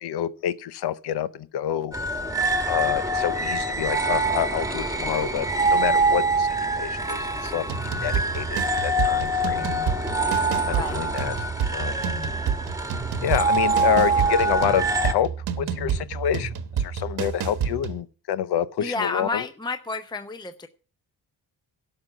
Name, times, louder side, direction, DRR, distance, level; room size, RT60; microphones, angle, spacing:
voice 1, 0.0-2.0 2.7-6.5 6.8-7.6 8.0-9.7 10.7-11.3 11.7-12.0 13.2-15.3 15.6-19.5, left 10 dB, 90° left, 0.8 m, -27 dB
sound 1, 1.9-15.1, right 2 dB, 10° right, 1.3 m, -25 dB
sound 2, 7.7-18.0, right 7 dB, 80° right, 1.2 m, -29 dB
voice 2, 10.7-11.0 18.8-20.7, left 3 dB, 10° left, 0.6 m, -30 dB
12.0 x 5.9 x 7.9 m
cardioid pair, 100°, 38 cm